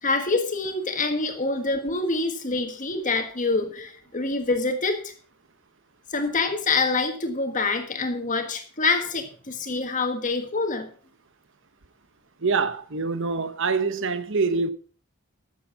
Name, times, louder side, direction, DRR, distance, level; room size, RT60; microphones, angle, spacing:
voice 1, 0.0-5.1 6.1-10.9, left 3 dB, 35° left, 1.5 m, -26 dB
voice 2, 12.4-14.7, right 4 dB, 60° right, 1.0 m, -25 dB
13.0 x 7.2 x 5.8 m
head